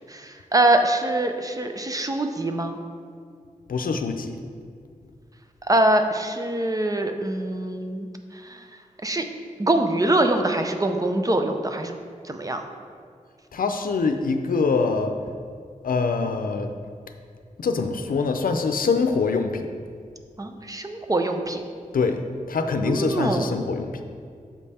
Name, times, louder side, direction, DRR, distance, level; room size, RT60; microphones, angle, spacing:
voice 1, 0.5-2.8 5.7-8.1 9.0-9.2 9.6-11.9 12.3-12.6 20.4-21.6 22.9-23.5, right 1 dB, 25° right, 5 dB, 0.6 m, -23 dB
voice 2, 3.7-4.3 13.5-15.1 15.8-16.7 17.6-19.7 21.9-22.2 22.5-24.0, left 4 dB, 90° left, 6 dB, 0.5 m, -24 dB
7.2 x 5.4 x 4.2 m, 2.2 s
wide cardioid pair, 80°, 14 cm